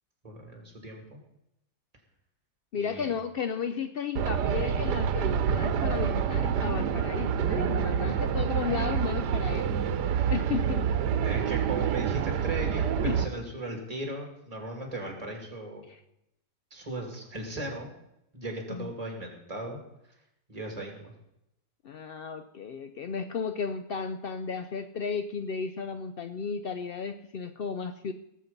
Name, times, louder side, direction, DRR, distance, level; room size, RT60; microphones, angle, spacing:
voice 1, 0.2-1.2 2.7-3.1 8.1-8.2 11.2-15.8 16.7-17.9 18.3-19.8 20.5-21.1, right 2 dB, 20° right, 2 dB, 2.7 m, -37 dB
voice 2, 2.7-9.7 10.0-10.9 13.0-13.2 15.9-16.0 18.7-18.9 21.8-28.1, left 6 dB, 85° left, 9 dB, 0.5 m, -34 dB
sound 1, 4.2-13.3, right 8 dB, 90° right, 1.3 m, -27 dB
18.0 x 7.5 x 5.3 m, 0.82 s
omnidirectional pair, 1.7 m